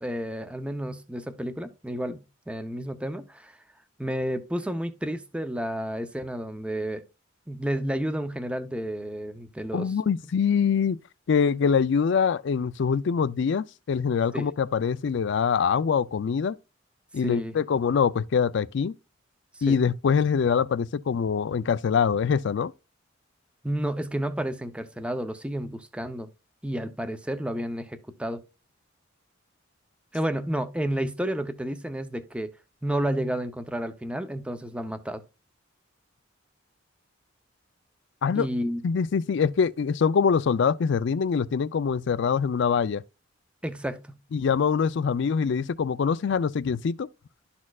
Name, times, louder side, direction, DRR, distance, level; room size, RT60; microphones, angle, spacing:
voice 1, 0.0-3.6 4.0-7.0 7.5-9.9 14.3-14.5 17.2-17.5 19.7-19.8 23.6-26.3 26.6-28.4 30.1-32.5 32.8-35.2 38.3-38.8 43.6-44.2, right 1 dB, 5° right, 0.6 m, -31 dB
voice 2, 9.7-11.0 11.3-16.6 17.1-18.9 19.6-22.7 38.2-38.5 38.8-43.0 44.3-47.1, left 6 dB, 65° left, 0.4 m, -24 dB
12.0 x 4.3 x 2.3 m
head